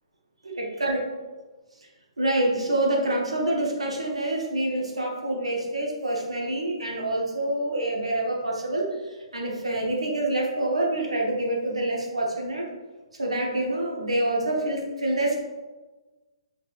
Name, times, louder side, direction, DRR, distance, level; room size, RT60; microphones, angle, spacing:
voice 1, 0.4-1.0 2.2-12.6 13.2-15.4, right 1 dB, 80° right, -1 dB, 1.0 m, -26 dB
4.6 x 4.5 x 2.5 m, 1.2 s
figure-of-eight pair, 125°, 3 cm